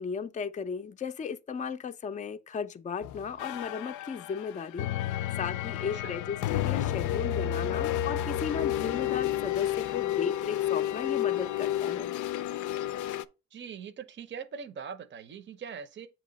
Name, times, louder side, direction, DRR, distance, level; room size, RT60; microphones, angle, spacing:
voice 1, 0.0-12.1, left 6 dB, 25° left, 0.4 m, -36 dB
sound 1, 3.0-13.2, left 12 dB, 80° left, 0.5 m, -31 dB
voice 2, 13.5-16.1, right 7 dB, 40° right, 0.6 m, -42 dB
7.3 x 2.9 x 5.1 m
cardioid pair, 90°, 30 cm